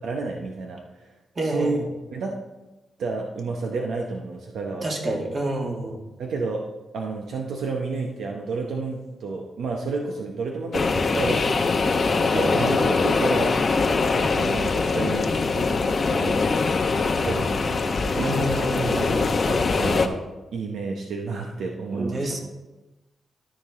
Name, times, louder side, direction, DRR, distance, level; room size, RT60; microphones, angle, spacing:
voice 1, 0.0-0.8 1.4-1.8 2.1-2.4 3.0-5.2 6.2-13.7 14.1-15.8 16.1-16.5 17.2-18.1 18.9-20.2 20.5-22.4, right 3 dB, 80° right, 1 dB, 0.8 m, -31 dB
voice 2, 1.4-1.8 4.8-6.0 12.3-12.8 18.1-19.2 21.9-22.4, right 1 dB, 45° right, 0 dB, 2.1 m, -27 dB
sound 1, 10.7-20.1, left 4 dB, 50° left, 0.8 m, -22 dB
12.5 x 5.2 x 3.6 m, 1.1 s
cardioid pair, 60°, 0 cm